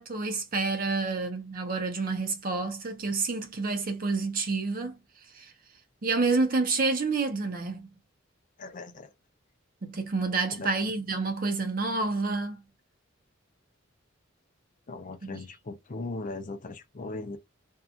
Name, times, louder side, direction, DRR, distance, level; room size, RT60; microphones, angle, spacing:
voice 1, 0.0-5.0 5.3-5.5 6.0-7.9 9.8-12.6 15.2-15.4, right 3 dB, 45° right, 0.7 m, -29 dB
voice 2, 8.6-9.1 10.5-10.7 14.9-17.4, left 3 dB, 40° left, 0.5 m, -38 dB
2.7 x 2.3 x 2.3 m
head